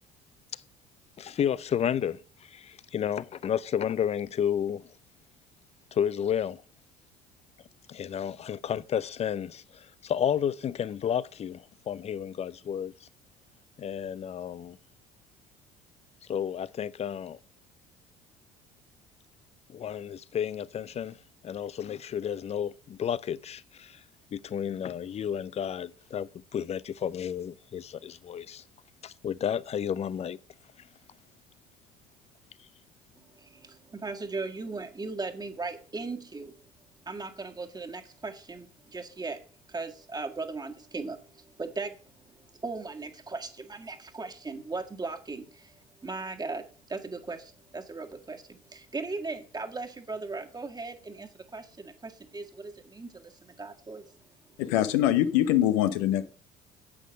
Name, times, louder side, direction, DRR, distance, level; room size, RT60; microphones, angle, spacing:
voice 1, 1.2-4.8 5.9-6.6 7.9-13.1 13.8-14.8 16.3-17.4 19.7-21.2 21.4-24.0 24.3-28.6 29.0-30.4, left 9 dB, 30° left, 0.6 m, -31 dB
voice 2, 33.2-36.5 37.1-39.4 39.7-54.1, right 3 dB, 20° right, 1.9 m, -38 dB
voice 3, 54.6-56.2, left 12 dB, 65° left, 0.9 m, -23 dB
9.8 x 8.3 x 5.1 m
figure-of-eight pair, 60°, 20 cm